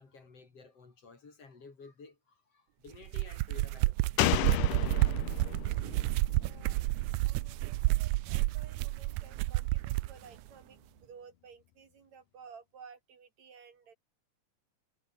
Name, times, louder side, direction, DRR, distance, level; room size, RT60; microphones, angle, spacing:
voice 1, 0.0-4.4, left 4 dB, 50° left, 5.1 m, -54 dB
sound 1, 2.9-10.1, right 20 dB, 80° right, 1.9 m, -30 dB
voice 2, 3.4-3.8 4.1-6.8 7.2-13.9, right 6 dB, 60° right, 3.7 m, -55 dB
Slam, 4.2-7.7 8.0-8.1, left 15 dB, 80° left, 2.5 m, -33 dB
omnidirectional pair, 3.6 m